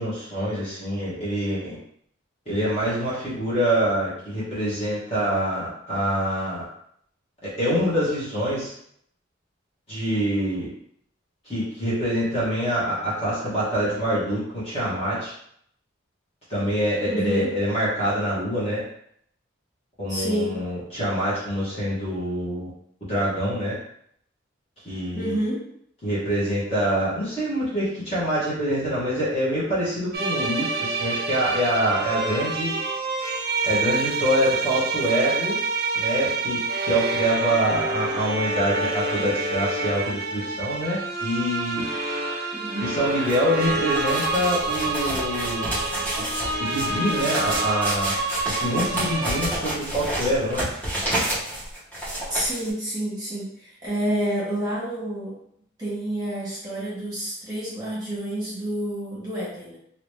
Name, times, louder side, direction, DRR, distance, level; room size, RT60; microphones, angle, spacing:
voice 1, 0.0-1.8 2.4-6.7 7.4-8.7 9.9-10.7 11.4-15.3 16.5-18.8 20.0-22.7 23.1-23.8 24.8-25.4 26.0-32.7 33.6-35.6 35.9-36.6 36.8-41.8 42.8-45.7 46.6-48.1 48.6-50.7, equal, 30° left, -9 dB, 1.4 m, -25 dB
voice 2, 17.1-17.5 20.1-20.6 25.1-25.7 42.5-43.0 52.3-55.4 55.8-59.8, right 1 dB, 20° right, -9 dB, 1.3 m, -29 dB
sound 1, 30.1-49.6, right 3 dB, 50° right, 0.5 m, -27 dB
sound 2, 43.2-52.7, right 1 dB, 10° left, 1.0 m, -30 dB
3.0 x 2.9 x 3.2 m, 0.68 s
head